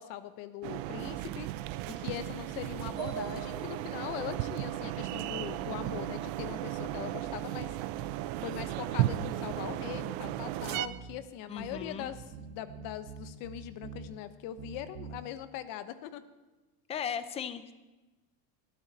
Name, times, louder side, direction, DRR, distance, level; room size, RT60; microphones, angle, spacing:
voice 1, 0.0-1.5 1.9-7.7 8.4-16.2, left 11 dB, 50° left, 11 dB, 1.1 m, -41 dB
sound 1, 0.6-10.9, right 14 dB, 55° right, 0.7 m, -35 dB
sound 2, 3.0-6.6, right 6 dB, 10° right, 3.0 m, -45 dB
sound 3, 3.3-5.1 5.6-8.2 8.6-11.1 11.6-14.1 14.6-15.2, right 6 dB, 75° right, 1.7 m, -48 dB
voice 2, 11.5-12.1 16.9-17.7, left 8 dB, 15° left, 12 dB, 0.5 m, -37 dB
19.0 x 13.0 x 4.2 m, 1.1 s
supercardioid pair, 155°, 43 cm